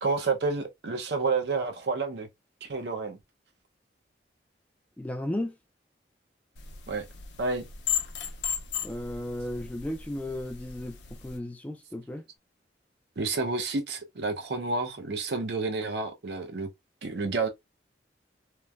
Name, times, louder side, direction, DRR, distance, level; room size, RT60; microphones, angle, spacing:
voice 1, 0.0-2.3 2.6-3.2 6.9-7.1 7.4-7.7 13.2-16.7 17.0-17.5, right 4 dB, 70° right, 0.6 m, -30 dB
voice 2, 5.0-5.5 8.8-12.2, left 1 dB, 10° left, 0.3 m, -35 dB
sound 1, 6.6-11.4, left 8 dB, 75° left, 0.5 m, -36 dB
3.1 x 2.1 x 2.3 m
head